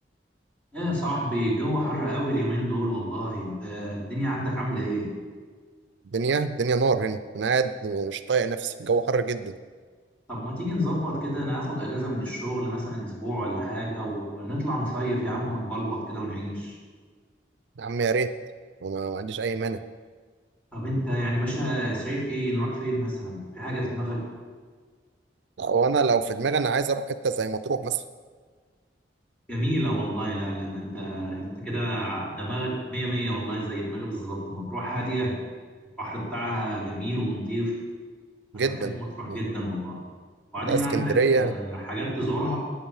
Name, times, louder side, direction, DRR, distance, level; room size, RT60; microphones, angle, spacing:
voice 1, 0.7-5.1 10.3-16.8 20.7-24.2 29.5-35.4 36.0-37.7 38.5-40.0 40.5-42.6, equal, 10° left, -5 dB, 3.4 m, -29 dB
voice 2, 6.1-9.5 17.8-18.3 18.8-19.8 25.6-28.0 38.5-39.0 39.3-39.4 40.6-41.5, right 4 dB, 80° right, 12 dB, 0.5 m, -25 dB
9.5 x 8.7 x 7.2 m, 1.6 s
head